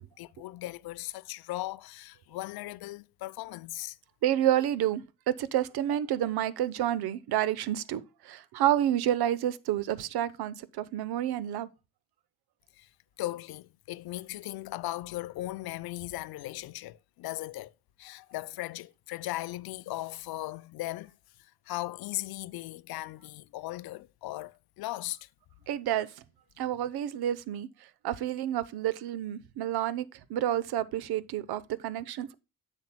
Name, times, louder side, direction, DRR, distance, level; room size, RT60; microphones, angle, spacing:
voice 1, 0.2-4.0 12.7-12.9 13.2-17.7 18.0-21.1 21.4-25.3, left 17 dB, 65° left, 0.6 m, -38 dB
voice 2, 4.2-11.7 25.7-26.1 26.6-27.7 28.0-32.3, right 12 dB, 65° right, 0.9 m, -29 dB
10.5 x 7.2 x 2.2 m
supercardioid pair, 65°, 40 cm